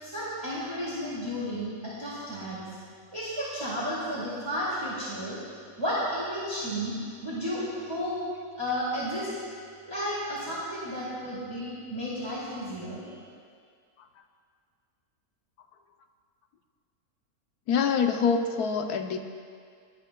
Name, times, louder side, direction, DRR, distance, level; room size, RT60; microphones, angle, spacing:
voice 1, 0.0-2.6 3.1-5.4 5.8-6.9 7.2-8.1 8.6-9.3 9.8-13.1, equal, 15° right, -9 dB, 2.4 m, -32 dB
voice 2, 17.7-19.2, left 6 dB, 80° left, 5 dB, 1.3 m, -25 dB
21.0 x 12.5 x 2.3 m, 2.1 s
omnidirectional pair, 1.6 m